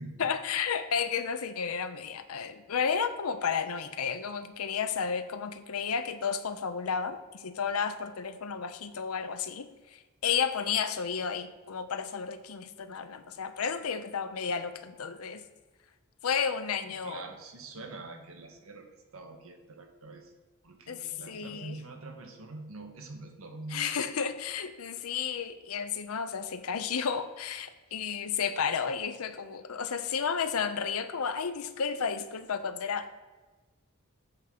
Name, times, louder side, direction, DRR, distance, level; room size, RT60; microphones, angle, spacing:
voice 1, 0.2-15.4 16.2-17.2 20.9-21.8 23.7-33.2, left 6 dB, 85° left, 10 dB, 0.6 m, -32 dB
voice 2, 16.9-20.3 20.6-23.8, right 2 dB, 70° right, 4 dB, 1.1 m, -45 dB
7.8 x 3.6 x 5.9 m, 1.2 s
head